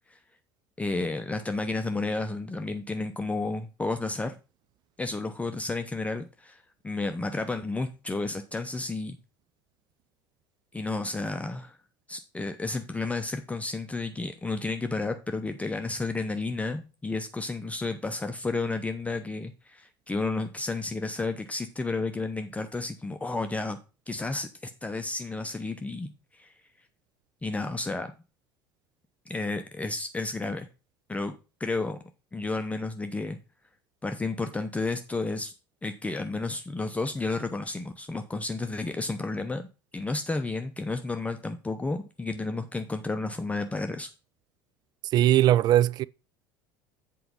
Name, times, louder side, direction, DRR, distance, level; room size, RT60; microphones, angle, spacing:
voice 1, 0.8-4.4 5.0-9.2 10.7-11.8 12.1-23.8 24.1-26.5 27.4-28.1 29.3-30.7 31.1-31.3 31.6-32.0 32.3-33.4 34.0-35.5 35.8-39.6 39.9-44.1, left 3 dB, 10° left, 0.7 m, -32 dB
voice 2, 45.1-46.0, right 13 dB, 35° right, 0.3 m, -20 dB
7.9 x 4.6 x 5.4 m
figure-of-eight pair, 65°, 12 cm